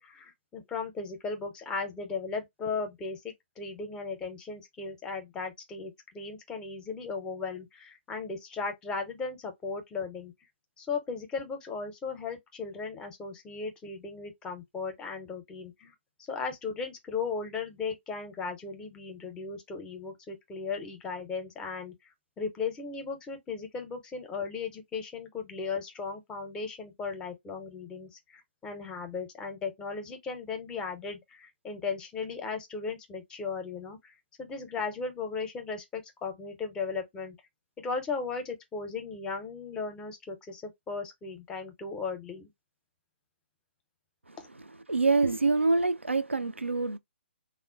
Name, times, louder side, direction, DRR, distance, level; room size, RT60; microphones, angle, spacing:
voice 1, 0.0-10.3 10.8-15.9 16.3-21.9 22.4-37.3 37.8-42.5 44.4-44.5, left 4 dB, 10° left, 0.6 m, -36 dB
voice 2, 44.9-47.0, right 3 dB, 90° right, 0.4 m, -26 dB
3.5 x 2.1 x 2.3 m
figure-of-eight pair, 130°, 6 cm